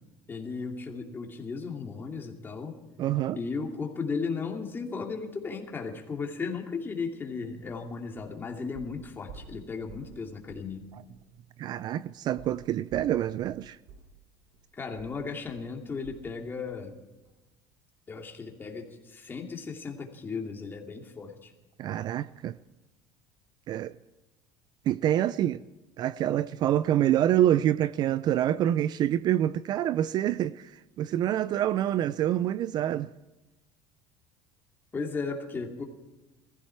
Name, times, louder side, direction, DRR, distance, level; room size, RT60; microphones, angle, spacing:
voice 1, 0.3-2.8 3.4-10.8 14.8-17.0 18.1-21.5 34.9-35.8, left 4 dB, 20° left, 2.6 m, -35 dB
voice 2, 3.0-3.4 11.6-13.8 21.8-22.6 23.7-23.9 24.9-25.6 26.0-30.7 31.0-33.1, right 12 dB, 45° right, 0.4 m, -26 dB
sound 1, 7.6-7.8 8.1-8.4 8.7-10.2 10.5-10.7 11.1-11.2 12.4-16.4 16.7-16.9 17.2-17.3, right 5 dB, 75° right, 5.3 m, -50 dB
20.0 x 15.0 x 4.7 m
cardioid pair, 130°, 10 cm